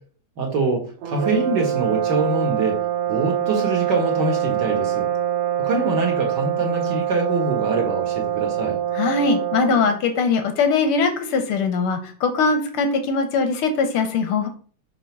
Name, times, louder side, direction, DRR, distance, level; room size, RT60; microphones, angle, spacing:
voice 1, 0.4-2.8 3.1-5.1 5.6-8.8, right 3 dB, 50° right, 2 dB, 1.4 m, -24 dB
sound 1, 1.0-10.0, right 10 dB, 70° right, 1.3 m, -24 dB
voice 2, 8.9-14.5, left 4 dB, 65° left, 6 dB, 1.4 m, -21 dB
5.9 x 3.8 x 5.9 m, 0.42 s
omnidirectional pair, 3.3 m